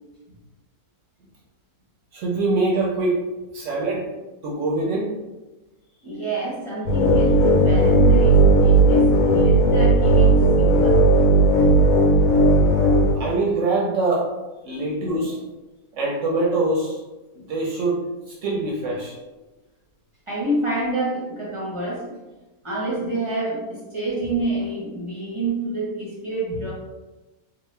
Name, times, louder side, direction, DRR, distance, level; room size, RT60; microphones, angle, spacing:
voice 1, 2.1-3.3 3.5-4.1 4.4-5.1 11.6-11.9 13.1-14.3 14.6-15.4 15.9-17.0 17.3-19.2, right 2 dB, 65° right, -3 dB, 0.8 m, -24 dB
voice 2, 6.0-11.1 20.3-22.0 22.6-26.7, right 2 dB, 30° right, -7 dB, 0.6 m, -27 dB
sound 1, 6.9-13.1, right 2 dB, 80° left, 1.2 m, -16 dB
3.0 x 2.0 x 3.1 m, 1.1 s
omnidirectional pair, 1.6 m